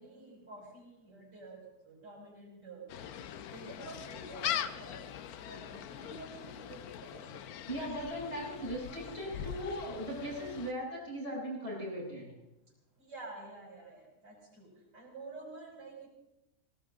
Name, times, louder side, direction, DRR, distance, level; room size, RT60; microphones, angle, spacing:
voice 1, 0.0-1.6 1.8-3.1 3.5-5.0 5.4-7.3 13.0-14.7 14.9-16.1, right 3 dB, 85° right, -5 dB, 6.2 m, -49 dB
Gull seagull, 2.9-10.7, left 10 dB, 70° left, 1.2 m, -41 dB
voice 2, 7.7-12.3, equal, 25° left, -6 dB, 8.0 m, -38 dB
19.5 x 18.0 x 3.8 m, 0.97 s
omnidirectional pair, 1.7 m